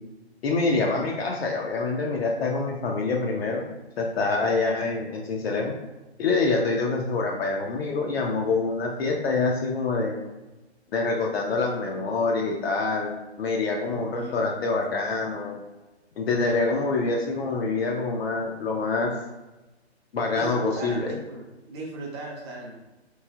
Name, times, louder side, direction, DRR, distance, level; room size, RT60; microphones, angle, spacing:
voice 1, 0.4-3.7 4.0-5.7 6.2-10.2 10.9-15.6 16.2-19.1 20.1-21.1, left 3 dB, 65° left, 0 dB, 0.5 m, -26 dB
voice 2, 13.9-14.4 20.3-22.8, right 3 dB, 25° right, -2 dB, 0.5 m, -37 dB
3.1 x 2.6 x 2.3 m, 1.1 s
hypercardioid pair, 135°, 33 cm